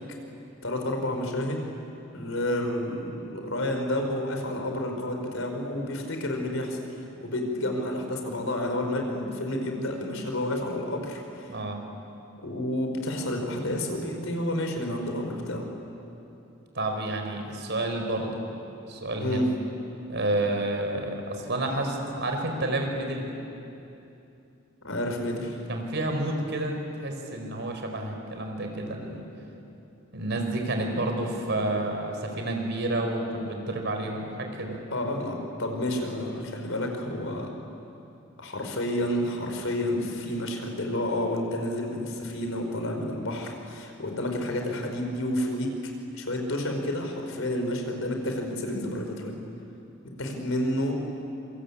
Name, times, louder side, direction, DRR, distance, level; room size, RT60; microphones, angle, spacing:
voice 1, 0.6-1.7 2.1-6.8 7.2-11.5 12.4-15.7 19.2-19.5 24.8-25.6 34.9-37.5 38.4-45.8 46.1-49.3 50.2-51.0, left 1 dB, 75° left, 3 dB, 4.6 m, -30 dB
voice 2, 11.5-11.8 16.7-18.3 18.9-19.4 20.1-23.3 25.7-26.7 27.0-29.2 30.1-34.8, right 1 dB, 60° right, 3 dB, 4.8 m, -30 dB
26.5 x 25.5 x 8.6 m, 2.8 s
head